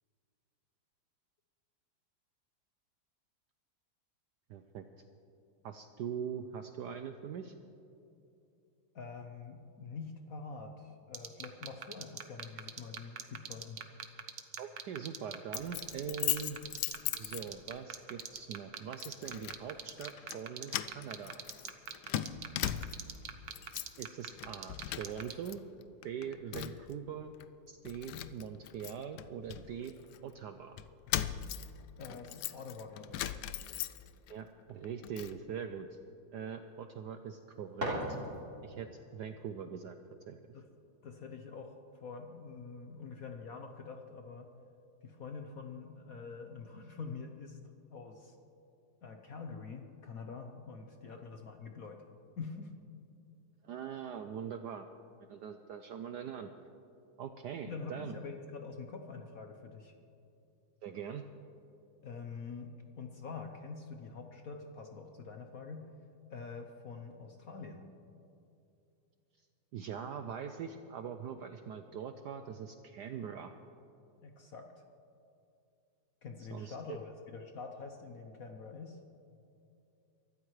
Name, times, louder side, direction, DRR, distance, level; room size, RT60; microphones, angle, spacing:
voice 1, 4.5-4.8 5.6-7.5 14.6-16.6 17.2-21.4 24.0-25.6 26.0-27.3 27.7-29.9 30.2-30.8 34.3-36.0 36.3-38.0 38.6-40.0 40.3-40.4 53.6-54.9 55.2-56.5 57.2-58.1 60.8-61.2 69.7-73.5 76.5-77.0, right 7 dB, 75° right, 7 dB, 0.9 m, -42 dB
voice 2, 8.9-13.8 32.0-33.4 40.5-40.7 41.0-44.5 45.0-47.6 47.9-48.4 49.0-52.0 52.4-52.7 57.6-59.9 62.0-65.9 66.3-67.9 74.2-74.8 76.2-79.0, left 4 dB, 60° left, 4 dB, 1.0 m, -46 dB
sound 1, 11.1-25.3, right 9 dB, 60° right, 1.1 m, -41 dB
Keys jangling, 15.5-17.8 18.2-18.4 19.0-19.6 19.9-20.4 20.7-23.2 23.5-24.0 24.3-25.5 25.8-26.9 27.4-27.5 27.8-30.2 30.8-34.3 34.7-35.4, left 12 dB, 85° left, 0.9 m, -39 dB
sound 2, 37.4-38.8, equal, 35° right, 3.9 m, -39 dB
23.5 x 13.5 x 3.2 m, 2.7 s
omnidirectional pair, 2.3 m